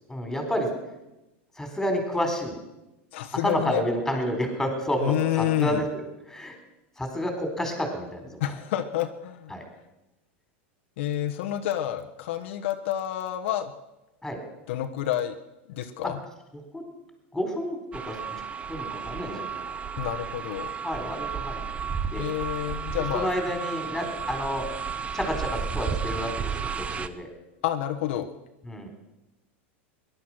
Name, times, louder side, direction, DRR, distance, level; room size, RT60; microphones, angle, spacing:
voice 1, 0.1-0.7 1.6-2.5 3.4-5.9 6.3-6.5 7.0-8.2 9.5-9.6 14.2-14.4 16.7-16.8 17.3-18.4 18.7-19.7 20.8-21.6 22.1-22.2 23.1-24.6 25.1-27.3 28.6-28.9, equal, 5° left, 4 dB, 4.1 m, -30 dB
voice 2, 3.1-3.8 5.0-5.8 8.4-9.5 11.0-13.7 14.7-15.3 15.7-16.2 20.0-20.8 22.1-23.3 27.6-28.3, left 12 dB, 70° left, 5 dB, 1.2 m, -29 dB
sound 1, 17.9-27.1, right 6 dB, 20° right, 0.7 m, -33 dB
18.5 x 11.5 x 6.2 m, 0.98 s
supercardioid pair, 125°, 7 cm